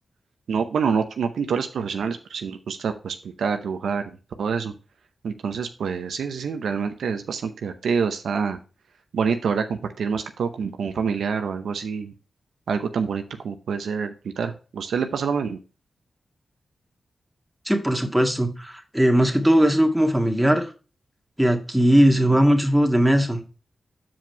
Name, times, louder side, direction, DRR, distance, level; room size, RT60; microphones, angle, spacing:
voice 1, 0.5-4.0 4.4-4.7 5.2-8.6 9.1-12.1 12.7-15.6, right 6 dB, 85° right, 7 dB, 0.7 m, -26 dB
voice 2, 17.7-20.7 21.4-23.4, equal, 5° right, 4 dB, 1.8 m, -19 dB
7.4 x 4.9 x 4.6 m, 0.33 s
cardioid pair, 45°, 0 cm